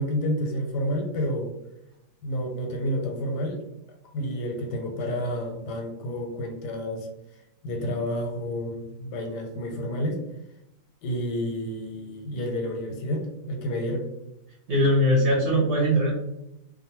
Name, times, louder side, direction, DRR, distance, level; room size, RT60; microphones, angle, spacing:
voice 1, 0.0-1.5 2.2-3.6 4.1-7.1 7.6-10.2 11.0-14.1, equal, 85° left, 2 dB, 1.2 m, -30 dB
voice 2, 14.7-16.1, equal, 55° right, -5 dB, 0.9 m, -21 dB
2.6 x 2.1 x 2.9 m, 0.84 s
omnidirectional pair, 1.7 m